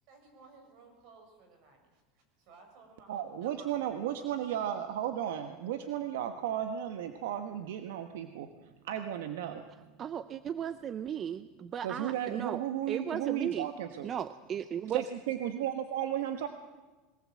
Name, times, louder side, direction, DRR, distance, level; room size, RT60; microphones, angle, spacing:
voice 1, 0.1-3.7 4.1-4.2, right 4 dB, 60° right, 4 dB, 7.1 m, -57 dB
voice 2, 3.1-9.7 11.8-14.1 14.9-16.5, right 10 dB, 85° right, 7 dB, 1.3 m, -34 dB
voice 3, 10.0-12.6 12.9-13.7 14.0-15.0, right 9 dB, 30° right, 13 dB, 0.7 m, -36 dB
22.0 x 19.0 x 7.7 m, 1.2 s
supercardioid pair, 130°, 0 cm